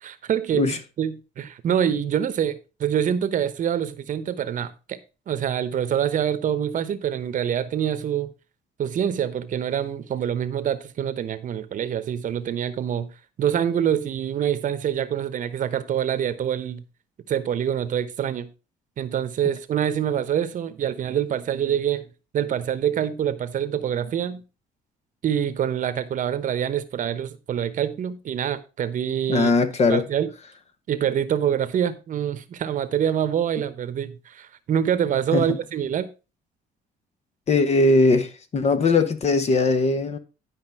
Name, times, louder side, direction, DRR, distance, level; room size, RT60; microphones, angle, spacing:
voice 1, 0.0-5.0 5.3-8.3 8.8-13.1 13.4-16.8 17.3-18.5 19.0-22.1 22.3-24.4 25.2-29.5 29.9-30.3 30.9-36.1, right 9 dB, 50° right, 1.0 m, -25 dB
voice 2, 29.3-30.0 35.3-35.6 37.5-40.2, left 3 dB, 40° left, 1.2 m, -20 dB
11.0 x 5.2 x 4.7 m
cardioid pair, 110°, 17 cm